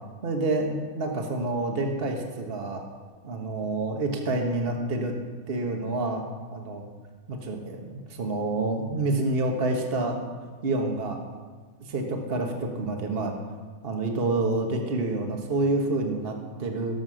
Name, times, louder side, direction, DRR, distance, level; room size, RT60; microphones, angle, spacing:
voice 1, 0.2-2.8 3.2-5.1 5.5-6.2 6.5-6.8 7.3-10.2 10.6-11.2 11.8-13.3 13.8-17.0, right 2 dB, 40° right, 2 dB, 1.5 m, -28 dB
17.5 x 7.4 x 6.3 m, 1.5 s
omnidirectional pair, 1.6 m